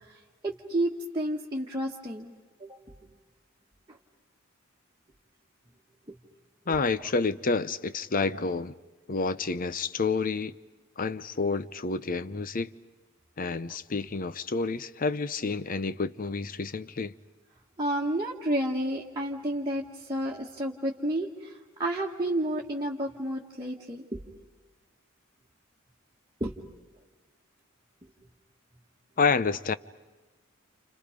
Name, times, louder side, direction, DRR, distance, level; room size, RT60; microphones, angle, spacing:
voice 1, 0.4-2.3 2.6-2.8 3.9-4.0 6.7-6.8 17.8-24.2 26.4-26.5, right 1 dB, 20° right, 1.7 m, -31 dB
voice 2, 6.7-8.7 9.1-10.5 11.0-12.7 13.4-17.1 29.2-29.7, left 4 dB, 40° left, 0.7 m, -29 dB
29.5 x 29.5 x 5.2 m
head